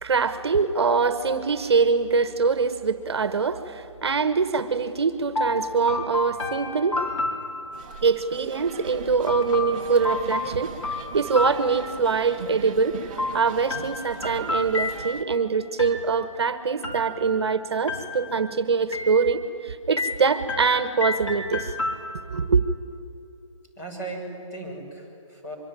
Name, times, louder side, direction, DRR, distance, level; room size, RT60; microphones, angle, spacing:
voice 1, 0.0-7.0 8.0-13.0 13.3-21.7 22.3-22.6, right 5 dB, 50° right, 12 dB, 1.2 m, -23 dB
sound 1, 5.4-8.1 9.3-12.3 13.2-15.4 15.8-16.4 16.8-17.5 17.9-18.5 18.9-19.6 20.0-22.4, left 2 dB, 65° left, 4.6 m, -31 dB
sound 2, 6.9-11.0 11.5-11.6, left 3 dB, 85° left, 4.1 m, -40 dB
sound 3, 7.7-15.2, right 6 dB, 15° right, 0.7 m, -40 dB
voice 2, 23.8-25.6, right 2 dB, 30° left, -1 dB, 6.4 m, -37 dB
24.5 x 24.0 x 10.0 m, 2.5 s
hypercardioid pair, 175°, 17 cm